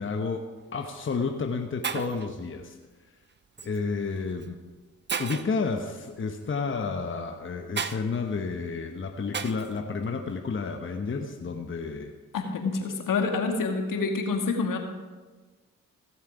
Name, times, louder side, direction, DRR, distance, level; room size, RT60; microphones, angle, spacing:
voice 1, 0.0-2.8 3.6-4.6 5.2-12.1, left 4 dB, 35° left, 4 dB, 1.1 m, -31 dB
Shatter, 0.6-0.8 1.5-1.6 1.8-2.3 3.6-3.8 4.4-4.5 5.1-5.6 7.8-8.0 9.3-9.7, right 6 dB, 30° right, 0.7 m, -33 dB
voice 2, 12.3-14.8, left 4 dB, 65° left, 3 dB, 1.8 m, -27 dB
16.5 x 7.3 x 4.9 m, 1.3 s
supercardioid pair, 50°, 35 cm